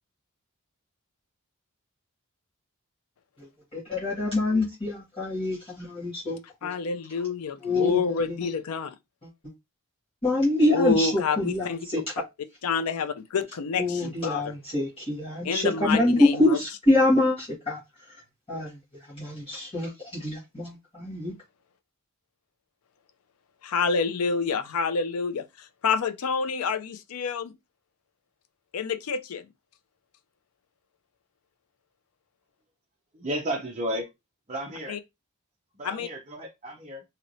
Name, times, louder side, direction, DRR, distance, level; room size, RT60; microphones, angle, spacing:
voice 1, 3.7-6.4 7.6-8.0 10.2-11.1 11.4-12.0 13.8-17.8 18.5-18.7 19.1-21.3, left 2 dB, 25° left, 1.4 m, -25 dB
voice 2, 6.6-9.0 10.7-11.9 12.6-14.5 15.4-16.6 23.6-27.6 28.7-29.5 34.9-35.0 35.8-36.1, left 5 dB, 85° left, 0.5 m, -28 dB
voice 3, 33.1-34.1 34.5-35.0 35.8-37.0, right 1 dB, 30° right, 0.6 m, -33 dB
3.1 x 2.8 x 2.6 m
head